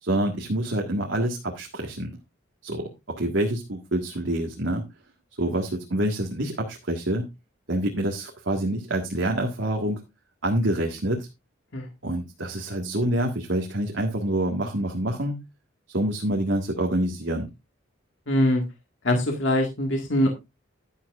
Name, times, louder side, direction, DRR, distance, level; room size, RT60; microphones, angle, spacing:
voice 1, 0.0-2.2 2.6-4.8 5.4-7.2 7.7-10.0 10.4-11.3 12.0-15.4 15.9-17.5, right 1 dB, 65° right, 1 dB, 1.7 m, -27 dB
voice 2, 18.3-18.6 19.0-20.3, left 1 dB, 65° left, 3 dB, 1.9 m, -22 dB
11.5 x 10.5 x 2.5 m, 0.23 s
head